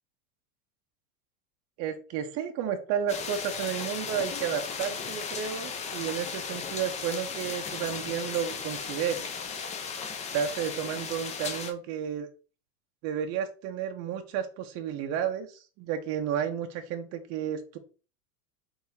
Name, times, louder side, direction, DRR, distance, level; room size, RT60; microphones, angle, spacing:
voice 1, 1.8-9.3 10.3-12.3 13.0-17.8, right 8 dB, 35° right, 5 dB, 0.7 m, -32 dB
sound 1, 3.1-11.7, left 6 dB, 15° left, 0.5 m, -36 dB
4.2 x 3.4 x 3.7 m, 0.35 s
supercardioid pair, 135°, 46 cm